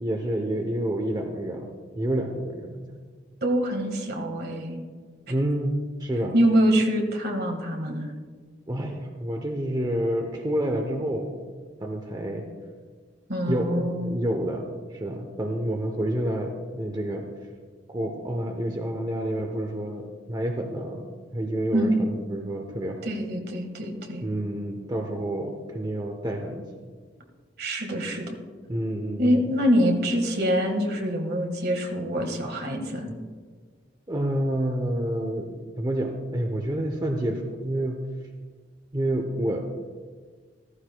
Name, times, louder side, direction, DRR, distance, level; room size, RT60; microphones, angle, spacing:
voice 1, 0.0-1.7 1.9-3.1 5.3-6.3 8.7-11.3 11.8-12.5 13.5-17.3 17.9-21.0 21.3-23.0 24.2-26.6 28.7-29.4 34.1-38.0 38.9-39.6, right 1 dB, 25° right, 3 dB, 0.8 m, -28 dB
voice 2, 3.4-4.8 6.3-8.1 13.3-14.2 21.7-22.0 23.0-24.2 27.6-28.3 29.2-33.2, equal, 60° right, 3 dB, 1.7 m, -25 dB
14.5 x 14.5 x 2.3 m, 1.5 s
head